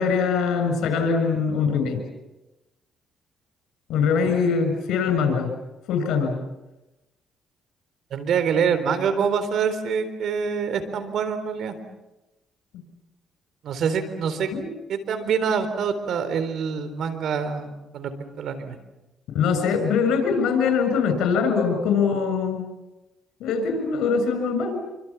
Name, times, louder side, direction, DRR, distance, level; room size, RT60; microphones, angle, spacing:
voice 1, 0.0-2.0 3.9-5.5 5.9-6.4 12.7-12.8 14.5-14.7 19.3-22.6 23.4-24.8, left 5 dB, 85° left, 7 dB, 6.5 m, -22 dB
voice 2, 8.1-11.7 13.6-14.5 14.9-18.1 18.4-18.8, right 6 dB, 70° right, 11 dB, 3.9 m, -25 dB
27.5 x 25.0 x 7.3 m, 1.0 s
cardioid pair, 90°, 0 cm